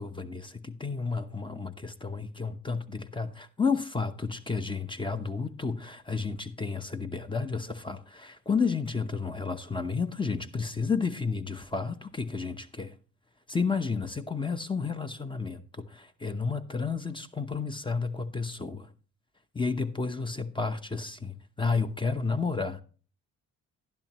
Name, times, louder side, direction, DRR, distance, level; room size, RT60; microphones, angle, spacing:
voice 1, 0.0-12.9 13.5-18.9 19.5-22.8, left 4 dB, 15° left, 0.8 m, -31 dB
11.5 x 10.5 x 3.0 m
cardioid pair, 90°, 30 cm